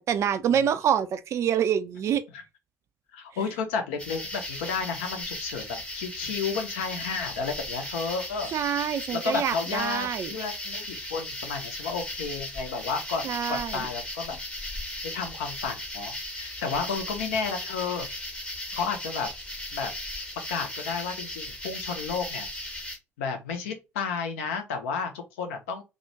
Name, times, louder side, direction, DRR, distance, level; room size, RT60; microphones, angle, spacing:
voice 1, 0.0-2.2 8.5-10.3 13.2-13.9, right 8 dB, 45° right, 0.3 m, -26 dB
voice 2, 3.1-8.5 9.1-14.7 15.0-18.1 18.7-19.3 19.7-19.9 20.5-22.5 23.2-25.8, left 5 dB, 70° left, 0.5 m, -32 dB
sound 1, 4.0-23.0, left 1 dB, 15° left, 0.7 m, -37 dB
2.3 x 2.1 x 2.7 m
figure-of-eight pair, 50°, 7 cm